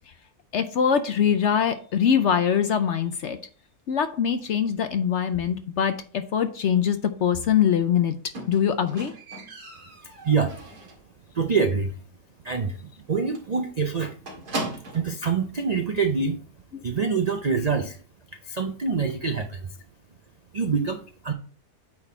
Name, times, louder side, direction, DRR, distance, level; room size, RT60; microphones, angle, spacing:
voice 1, 0.5-3.4 3.9-8.2 8.5-9.1 16.7-16.8, left 8 dB, 60° left, 9 dB, 0.8 m, -23 dB
Squeak, 8.3-11.1 11.4-11.8 12.1-12.2 12.6-12.7 13.0-13.1 13.3-15.2 16.0-16.1, right 2 dB, 85° right, 2.5 m, -37 dB
voice 2, 10.2-10.6 11.3-11.9 12.4-14.2 14.9-16.4 16.8-18.0 18.4-19.7 20.5-21.3, right 5 dB, 65° right, 6 dB, 0.4 m, -25 dB
8.8 x 4.1 x 4.3 m, 0.41 s
omnidirectional pair, 1.6 m